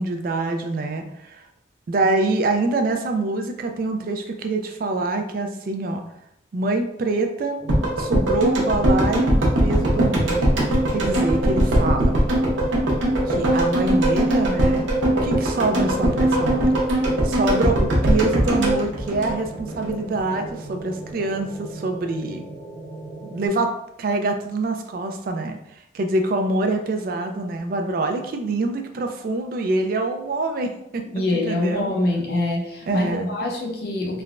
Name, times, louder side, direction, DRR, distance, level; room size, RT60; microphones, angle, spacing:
voice 1, 0.0-1.4 1.9-6.0 6.5-7.6 8.0-10.4 10.9-12.1 13.3-14.9 15.1-16.7 17.2-22.4 23.2-25.6 25.9-31.9 32.9-33.3, right 2 dB, 50° right, 5 dB, 0.3 m, -25 dB
sound 1, 7.6-23.5, right 2 dB, 5° right, 0.7 m, -38 dB
sound 2, 7.7-19.9 20.2-20.3, right 1 dB, 85° right, 0.7 m, -20 dB
voice 2, 31.1-34.2, left 2 dB, 55° left, -1 dB, 0.6 m, -25 dB
3.2 x 2.1 x 2.4 m, 0.76 s
head